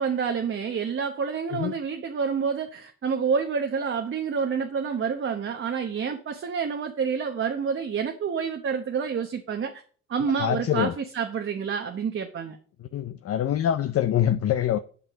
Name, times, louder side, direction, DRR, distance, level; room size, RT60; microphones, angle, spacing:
voice 1, 0.0-9.8 10.1-12.6, right 6 dB, 40° right, 1.0 m, -28 dB
voice 2, 10.4-10.9 12.9-14.8, left 10 dB, 50° left, 0.6 m, -24 dB
8.4 x 5.3 x 6.1 m
cardioid pair, 90°, 30 cm